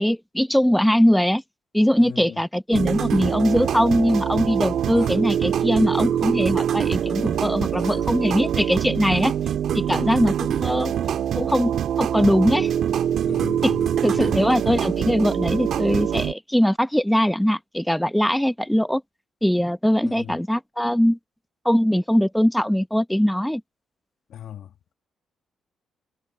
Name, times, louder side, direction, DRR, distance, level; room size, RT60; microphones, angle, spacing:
voice 1, 0.0-1.4 1.7-9.3 9.7-10.9 11.4-11.7 12.0-12.7 13.6-13.8 14.0-19.0 19.4-21.2 21.6-23.6, equal, 5° left, 0.9 m, -21 dB
voice 2, 2.0-2.4 4.9-5.1 7.7-8.1 9.0-9.1 9.9-10.3 13.3-14.5 20.0-20.4 24.3-24.9, left 10 dB, 70° left, 1.5 m, -38 dB
sound 1, 2.7-16.3, right 9 dB, 65° right, 1.7 m, -24 dB
cardioid pair, 90°, 0 cm